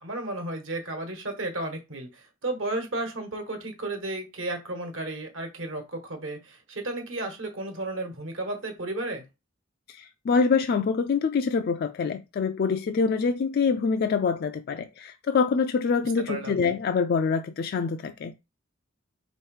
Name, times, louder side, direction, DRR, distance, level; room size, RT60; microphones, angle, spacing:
voice 1, 0.0-9.2 16.3-16.6, right 2 dB, 70° right, 1.3 m, -33 dB
voice 2, 9.9-18.3, left 5 dB, 50° left, 0.3 m, -25 dB
3.5 x 3.1 x 4.8 m
head